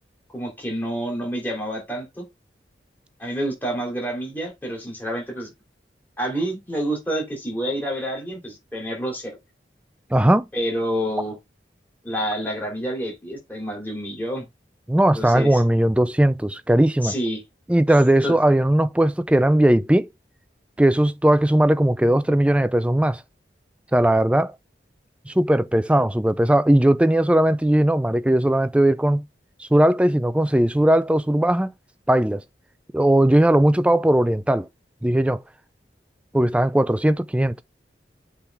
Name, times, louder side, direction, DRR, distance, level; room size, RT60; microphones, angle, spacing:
voice 1, 0.3-2.3 3.2-5.5 6.2-9.4 10.5-11.4 12.0-14.5 15.1-15.6 17.0-17.4 18.2-18.3, equal, 10° left, 3.0 m, -28 dB
voice 2, 10.1-10.4 14.9-17.1 17.7-20.1 20.8-23.2 23.9-24.5 25.3-29.2 29.6-31.7 32.1-32.4 32.9-34.7 35.0-35.4 36.3-37.5, right 1 dB, 5° right, 0.3 m, -18 dB
7.1 x 3.6 x 4.6 m
head